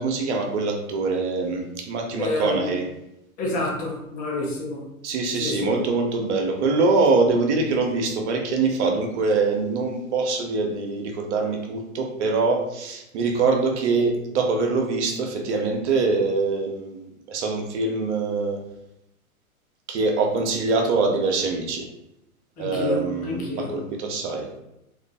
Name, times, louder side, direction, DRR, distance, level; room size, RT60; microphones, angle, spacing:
voice 1, 0.0-2.9 5.0-18.6 19.9-21.9 22.6-24.5, right 3 dB, 55° right, 3 dB, 0.6 m, -24 dB
voice 2, 2.2-2.7 3.4-4.8 5.4-5.8 22.6-23.8, left 2 dB, 20° left, -2 dB, 0.6 m, -28 dB
2.5 x 2.3 x 2.2 m, 0.86 s
hypercardioid pair, 105°, 43 cm